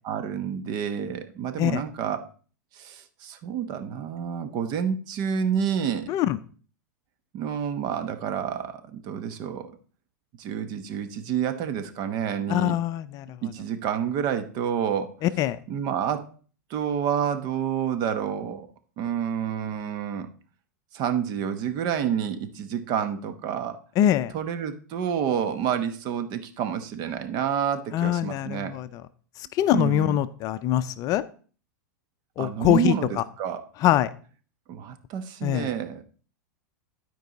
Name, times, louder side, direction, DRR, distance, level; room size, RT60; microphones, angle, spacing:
voice 1, 0.0-2.3 2.7-6.1 7.3-9.7 10.4-12.7 13.4-15.1 15.7-16.3 16.7-18.7 19.0-20.3 20.9-23.8 24.3-28.8 29.7-30.2 32.4-33.1 33.4-33.6 34.7-36.0, right 8 dB, 45° right, 10 dB, 1.1 m, -29 dB
voice 2, 6.1-6.4 12.5-13.4 15.2-15.6 24.0-24.3 27.9-29.0 29.4-31.2 32.4-33.2 33.8-34.1 35.4-35.7, left 12 dB, 40° left, 13 dB, 0.5 m, -24 dB
12.0 x 4.6 x 4.0 m, 0.40 s
hypercardioid pair, 115°, 10 cm